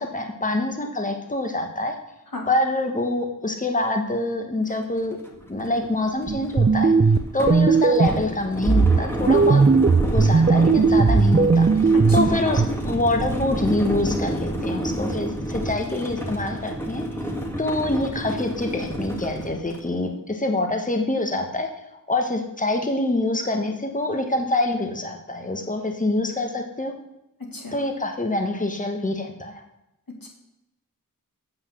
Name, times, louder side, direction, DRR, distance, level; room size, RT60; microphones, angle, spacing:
voice 1, 0.0-1.9 2.5-5.2 5.5-6.9 7.3-9.6 10.0-17.0 17.6-21.7 22.1-26.9 27.7-29.6, left 2 dB, 25° left, 3 dB, 1.2 m, -25 dB
sound 1, 4.7-4.8 5.1-19.9, right 1 dB, 5° left, 1.6 m, -30 dB
sound 2, 6.3-8.3 8.7-12.7, right 4 dB, 30° right, 0.5 m, -17 dB
voice 2, 27.5-27.8 30.2-30.3, left 2 dB, 85° left, 0 dB, 2.0 m, -34 dB
8.1 x 5.7 x 7.3 m, 0.87 s
wide cardioid pair, 55°, 34 cm